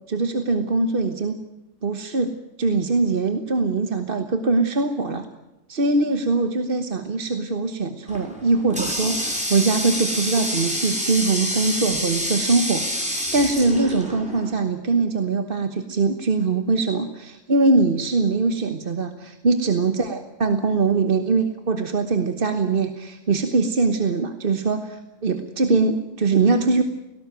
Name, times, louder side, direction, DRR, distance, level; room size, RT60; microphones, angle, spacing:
voice 1, 0.1-1.4 1.8-5.3 5.7-26.8, right 3 dB, 40° right, 8 dB, 1.3 m, -22 dB
Water tap faucet, 8.1-14.6, equal, 5° right, 6.4 m, -27 dB
18.5 x 17.5 x 9.2 m, 0.98 s
omnidirectional pair, 1.5 m